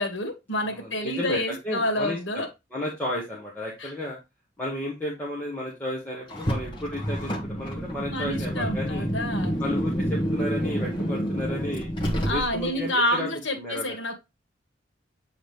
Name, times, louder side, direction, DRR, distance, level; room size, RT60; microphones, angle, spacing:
voice 1, 0.0-2.5 3.8-3.9 8.1-9.5 12.2-14.2, left 1 dB, 80° left, 2.0 m, -28 dB
voice 2, 0.7-2.4 2.7-4.2 4.6-9.1 9.6-11.9 12.3-13.3 13.6-14.0, left 1 dB, 10° left, 1.9 m, -33 dB
Car, 6.3-12.8, equal, 25° left, 1.9 m, -28 dB
8.6 x 3.9 x 3.5 m
head